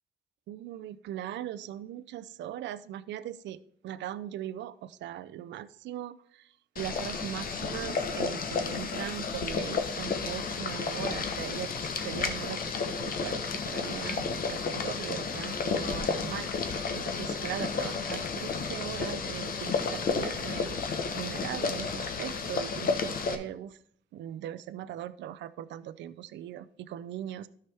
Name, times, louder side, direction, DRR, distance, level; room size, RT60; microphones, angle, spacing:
voice 1, 0.5-6.5 6.8-23.8 24.1-27.5, right 11 dB, 90° right, 14 dB, 0.4 m, -40 dB
Boiling, 6.8-23.4, left 5 dB, 55° left, 1.0 m, -32 dB
12.5 x 5.7 x 3.4 m, 0.64 s
cardioid pair, 120°, 18 cm